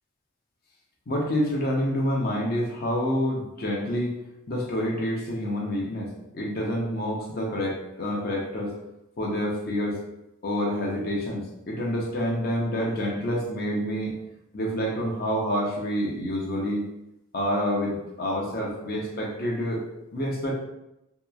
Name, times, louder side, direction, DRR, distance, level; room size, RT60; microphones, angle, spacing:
voice 1, 1.1-4.1 4.5-8.7 9.2-10.0 10.4-14.1 14.5-16.8 17.3-19.8 20.1-20.5, equal, 45° left, -2 dB, 0.6 m, -28 dB
2.8 x 2.3 x 2.3 m, 0.88 s
head